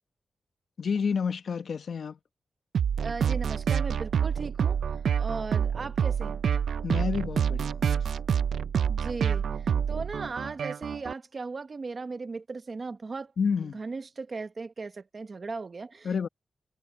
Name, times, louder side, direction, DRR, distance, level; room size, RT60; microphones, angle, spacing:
voice 1, 0.8-2.2 6.8-8.1 13.4-13.8 16.0-16.3, left 6 dB, 60° left, 1.0 m, -30 dB
sound 1, 2.7-11.1, right 7 dB, 80° right, 0.4 m, -27 dB
voice 2, 3.0-4.8 5.2-6.4 8.9-13.3 13.7-16.3, right 4 dB, 35° right, 1.2 m, -37 dB
wide cardioid pair, 160°, 0 cm